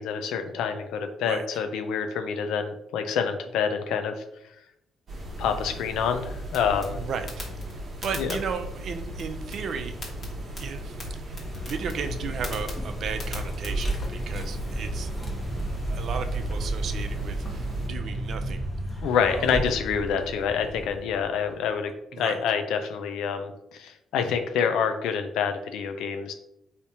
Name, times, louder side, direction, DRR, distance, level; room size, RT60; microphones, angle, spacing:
voice 1, 0.0-4.2 5.4-7.0 8.2-8.4 19.0-21.9 22.2-26.3, left 7 dB, 75° left, 7 dB, 0.4 m, -27 dB
sound 1, 5.1-17.9, right 1 dB, 45° right, 0.9 m, -37 dB
sound 2, 6.5-14.1, left 2 dB, 50° left, 1.3 m, -44 dB
voice 2, 6.9-7.5 8.0-9.9 10.6-11.0 11.2-15.1 15.9-18.6 19.3-19.5 22.1-22.4, right 6 dB, 65° right, 7 dB, 0.4 m, -35 dB
Vehicle, 11.3-21.6, right 1 dB, 25° left, 0.9 m, -32 dB
3.3 x 2.8 x 2.8 m, 0.81 s
supercardioid pair, 60°, 0 cm